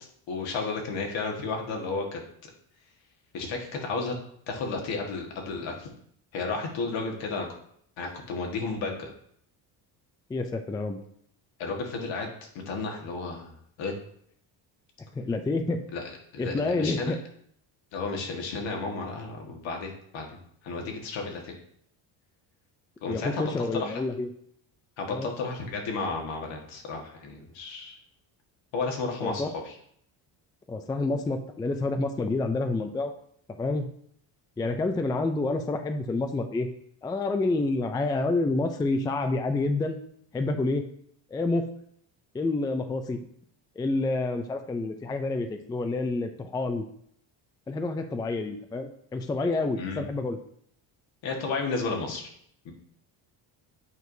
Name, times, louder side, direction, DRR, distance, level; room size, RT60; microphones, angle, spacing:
voice 1, 0.3-2.2 3.3-4.1 4.5-5.9 6.3-7.5 8.0-9.1 11.6-13.9 15.9-17.1 17.9-20.3 20.6-21.5 23.0-24.0 25.0-28.0 28.7-29.7 49.8-50.0 51.2-52.3 52.6-52.7, left 4 dB, 70° left, 1 dB, 1.6 m, -33 dB
voice 2, 10.3-11.0 15.2-15.8 16.4-17.2 23.1-24.3 25.1-25.3 29.2-29.5 30.7-33.1 33.6-33.9 34.6-36.7 37.0-40.0 40.3-40.8 41.3-41.6 42.3-43.2 43.8-46.9 47.7-50.4, left 2 dB, 10° left, 7 dB, 0.3 m, -28 dB
8.2 x 4.6 x 2.6 m, 0.66 s
cardioid pair, 105°, 47 cm